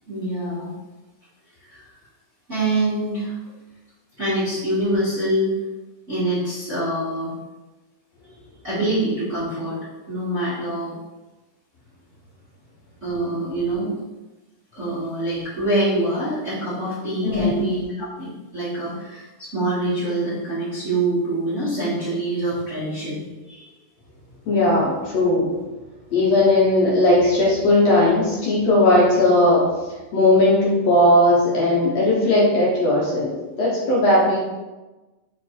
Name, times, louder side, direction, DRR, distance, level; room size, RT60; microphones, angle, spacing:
voice 1, 0.1-0.7 1.7-1.9 2.5-3.4 4.2-5.5 6.1-7.3 8.6-9.8 10.1-10.9 13.0-13.9 14.7-23.2, right 1 dB, 35° right, -11 dB, 1.3 m, -25 dB
voice 2, 17.2-17.6 24.5-25.5 26.1-29.7 30.1-34.4, left 1 dB, 65° left, -4 dB, 1.9 m, -17 dB
5.0 x 4.2 x 4.4 m, 1.1 s
omnidirectional pair, 3.7 m